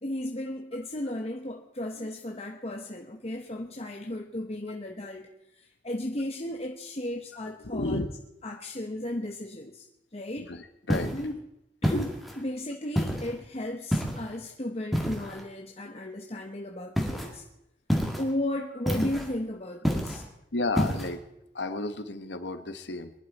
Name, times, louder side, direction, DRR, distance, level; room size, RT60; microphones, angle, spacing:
voice 1, 0.0-5.3 5.6-8.0 8.4-9.9 10.1-10.5 11.1-11.5 11.8-17.4 18.2-20.3, left 1 dB, 35° left, 2 dB, 1.0 m, -35 dB
voice 2, 7.6-8.1 10.4-11.1 20.5-21.2 21.5-23.1, left 2 dB, 80° left, 10 dB, 1.2 m, -32 dB
sound 1, 10.9-11.3 11.8-12.4 13.0-13.3 13.9-14.3 14.9-15.4 17.0-17.3 17.9-18.3 18.9-19.3 19.8-20.3 20.8-21.1, equal, ahead, 1.9 m, -28 dB
22.5 x 11.5 x 4.2 m, 0.83 s
head